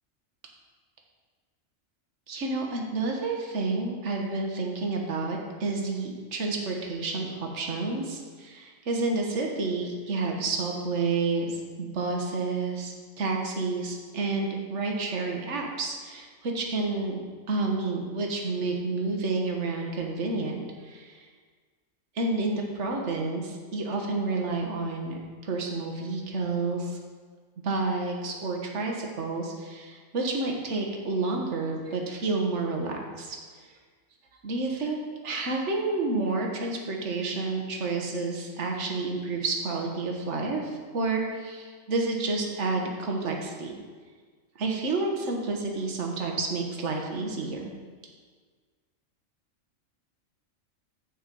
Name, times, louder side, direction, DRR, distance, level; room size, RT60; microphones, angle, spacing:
voice 1, 2.3-17.2 17.5-21.3 22.1-27.0 27.6-33.4 34.4-35.0 35.2-43.7 44.6-47.7, right 3 dB, 60° right, 1 dB, 1.6 m, -30 dB
9.9 x 4.5 x 7.6 m, 1.6 s
omnidirectional pair, 1.4 m